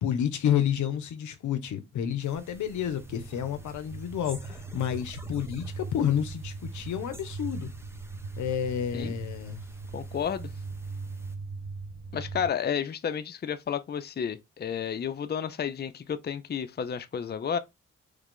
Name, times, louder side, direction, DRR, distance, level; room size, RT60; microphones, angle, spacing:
voice 1, 0.0-7.7 8.4-9.6, left 9 dB, 80° left, 0.6 m, -30 dB
sound 1, 2.2-11.4, right 1 dB, 10° right, 0.7 m, -52 dB
sound 2, 2.5-12.5, right 3 dB, 70° right, 1.2 m, -40 dB
voice 2, 9.9-10.5 12.1-17.6, left 7 dB, 35° left, 0.5 m, -31 dB
3.2 x 2.4 x 3.6 m
supercardioid pair, 45°, 29 cm